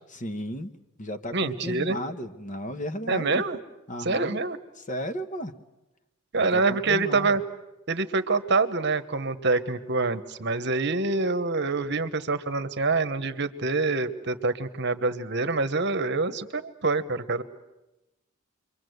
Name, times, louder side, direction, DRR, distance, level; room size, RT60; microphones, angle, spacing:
voice 1, 0.1-3.4 3.9-4.4 4.9-5.6 6.4-7.4, equal, 35° left, 9 dB, 1.2 m, -34 dB
voice 2, 1.3-2.0 3.1-3.6 4.0-4.6 6.3-7.4 7.9-17.4, right 3 dB, 55° right, 10 dB, 1.2 m, -26 dB
28.5 x 23.5 x 8.0 m, 0.97 s
head